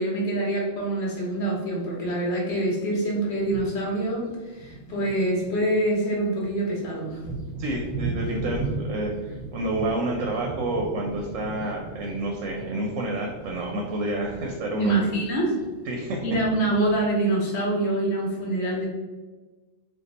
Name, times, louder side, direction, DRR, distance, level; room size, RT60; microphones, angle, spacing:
voice 1, 0.0-7.2 14.8-15.5 16.2-18.9, right 1 dB, 55° left, -3 dB, 1.1 m, -25 dB
Thunder, 1.1-1.2 2.2-2.3 2.9-3.0 3.3-17.1, right 3 dB, 75° left, 1.3 m, -37 dB
voice 2, 7.6-14.9 15.9-16.2, right 1 dB, 70° right, 0 dB, 0.9 m, -29 dB
2.6 x 2.5 x 3.9 m, 1.2 s
omnidirectional pair, 1.5 m